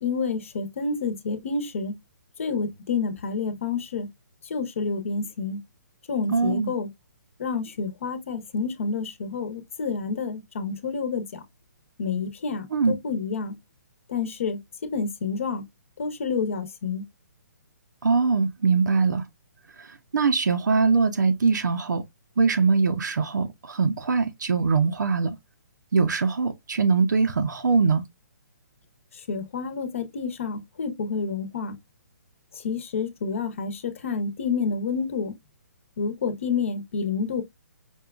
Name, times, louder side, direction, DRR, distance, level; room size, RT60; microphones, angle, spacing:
voice 1, 0.0-2.0 2.4-4.1 4.4-5.6 6.1-6.9 7.4-11.4 12.0-13.5 14.1-15.6 16.0-17.0 29.3-31.7 32.5-35.3 36.0-37.4, left 5 dB, 45° left, 0.9 m, -29 dB
voice 2, 6.3-6.7 12.7-13.0 18.0-19.2 19.8-22.0 22.4-25.4 25.9-28.0, right 4 dB, 90° right, 0.7 m, -22 dB
5.4 x 2.3 x 2.3 m
hypercardioid pair, 175°, 10 cm